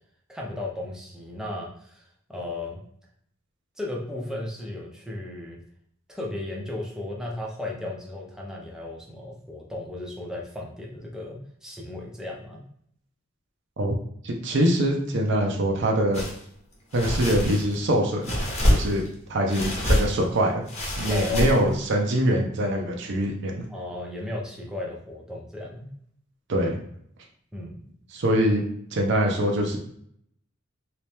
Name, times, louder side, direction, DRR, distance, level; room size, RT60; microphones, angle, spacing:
voice 1, 0.3-2.8 3.8-5.6 6.1-12.6 21.0-21.5 23.7-25.9 27.5-27.8, left 2 dB, 5° right, -2 dB, 0.6 m, -35 dB
voice 2, 14.2-16.2 16.9-19.0 19.3-20.6 21.0-23.6 26.5-26.8 28.1-28.6 28.9-29.8, right 1 dB, 60° right, 2 dB, 0.6 m, -24 dB
Toilet Paper Plastic Rustling, 16.1-16.4 16.9-17.8 18.2-19.1 19.5-20.2 20.7-21.8, equal, 35° left, 1.0 m, -25 dB
3.2 x 2.9 x 3.4 m, 0.67 s
head